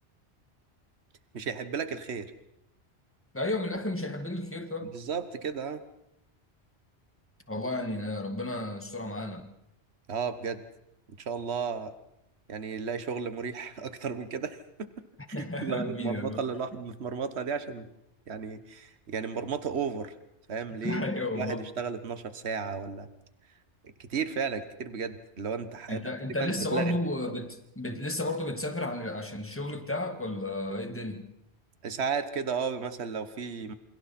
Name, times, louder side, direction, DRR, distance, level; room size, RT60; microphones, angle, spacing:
voice 1, 1.3-2.3 4.9-5.8 10.1-10.6 11.2-11.9 12.5-14.9 15.3-17.9 18.3-20.1 20.5-21.0 21.3-23.1 24.0-26.0 26.4-27.0 31.8-33.7, right 6 dB, 75° right, 10 dB, 1.5 m, -33 dB
voice 2, 3.3-4.9 7.5-9.5 15.3-16.4 20.8-21.7 25.9-31.3, left 1 dB, 10° left, 6 dB, 1.8 m, -33 dB
28.5 x 28.0 x 4.3 m, 0.82 s
omnidirectional pair, 1.1 m